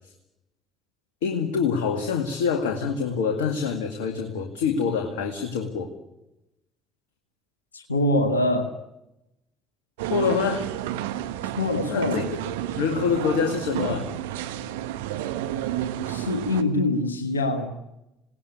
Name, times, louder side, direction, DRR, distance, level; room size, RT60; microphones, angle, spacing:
voice 1, 1.2-5.9 10.1-10.7 11.9-14.1, left 6 dB, 70° left, 4 dB, 2.1 m, -26 dB
voice 2, 7.7-8.7 11.4-12.3 13.1-13.2 16.1-17.8, left 1 dB, 85° left, 7 dB, 1.5 m, -24 dB
sound 1, 10.0-16.6, right 12 dB, 70° right, 1.2 m, -31 dB
28.0 x 18.5 x 9.7 m, 0.94 s
figure-of-eight pair, 50°, 0 cm